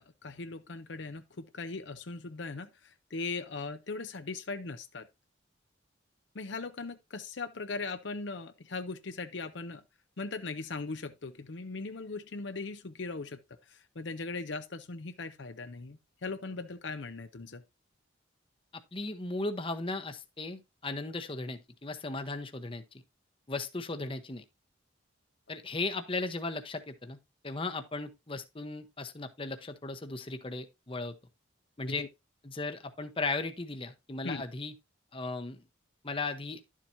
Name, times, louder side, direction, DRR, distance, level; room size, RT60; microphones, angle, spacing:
voice 1, 0.0-5.1 6.3-9.8 10.2-13.4 13.7-17.6 31.8-32.1 34.2-34.4, left 3 dB, 60° left, 0.7 m, -39 dB
voice 2, 18.9-22.8 23.5-24.4 25.5-27.2 27.4-31.2 31.8-32.1 32.4-34.7 35.1-35.6 36.0-36.6, left 3 dB, 25° left, 0.9 m, -36 dB
11.5 x 7.4 x 2.7 m
head